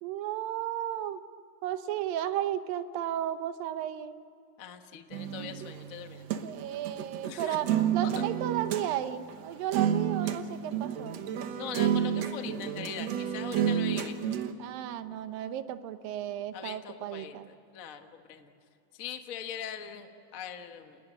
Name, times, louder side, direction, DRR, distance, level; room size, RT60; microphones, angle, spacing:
voice 1, 0.0-1.2 1.6-4.2 6.4-11.3 14.6-17.5, right 11 dB, 85° right, 11 dB, 2.7 m, -34 dB
voice 2, 4.6-6.2 7.2-7.6 8.0-8.2 11.6-14.4 16.5-18.5 18.9-21.0, left 8 dB, 65° left, 6 dB, 0.8 m, -42 dB
sound 1, 5.1-8.9 9.3-9.4 9.7-10.4 10.7-14.5, right 9 dB, 60° right, 2.1 m, -30 dB
30.0 x 19.5 x 8.6 m, 2.8 s
omnidirectional pair, 3.9 m